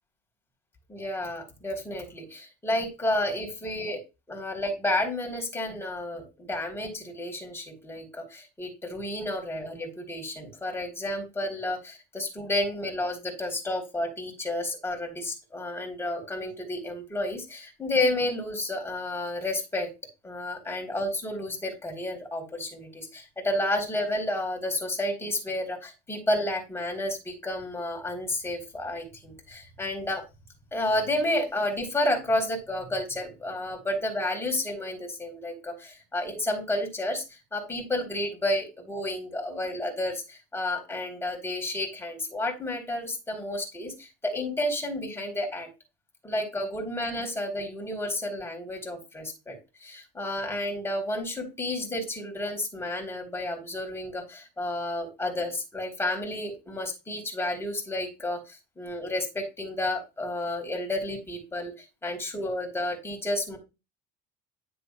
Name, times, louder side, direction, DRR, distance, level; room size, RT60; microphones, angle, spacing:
voice 1, 0.9-4.0 4.3-19.9 20.2-30.2 30.7-37.2 37.5-45.7 46.2-61.7 62.0-63.6, left 1 dB, 10° left, 1 dB, 3.9 m, -31 dB
9.6 x 7.7 x 2.4 m, 0.27 s
supercardioid pair, 95°, 20 cm